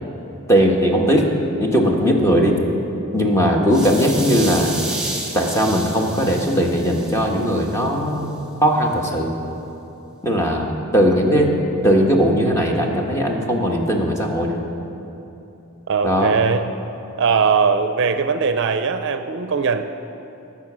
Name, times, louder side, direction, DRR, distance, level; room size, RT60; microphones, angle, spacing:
voice 1, 0.5-1.3 1.6-2.6 3.1-4.8 5.3-9.3 10.2-11.5 11.8-14.6 16.0-16.3, equal, 15° left, 0 dB, 1.3 m, -18 dB
voice 2, 3.4-3.7 15.9-16.7 17.2-19.8, right 5 dB, 60° right, 8 dB, 0.5 m, -20 dB
sound 1, 3.7-7.8, right 2 dB, 5° right, 2.3 m, -31 dB
19.0 x 7.1 x 6.2 m, 3.0 s
head